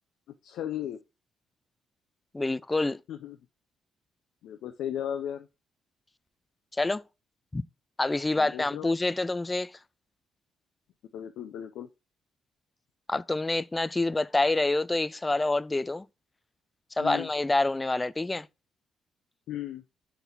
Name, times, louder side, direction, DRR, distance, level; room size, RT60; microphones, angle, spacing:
voice 1, 0.4-1.0 3.1-3.4 4.4-5.5 8.3-8.9 11.1-11.9 17.0-17.3 19.5-19.8, left 10 dB, 80° left, 0.5 m, -35 dB
voice 2, 2.3-3.0 6.8-7.0 7.5-7.6 8.0-9.7 13.1-16.1 17.0-18.5, left 2 dB, 15° left, 0.3 m, -27 dB
4.5 x 3.9 x 5.3 m
cardioid pair, 90°, 0 cm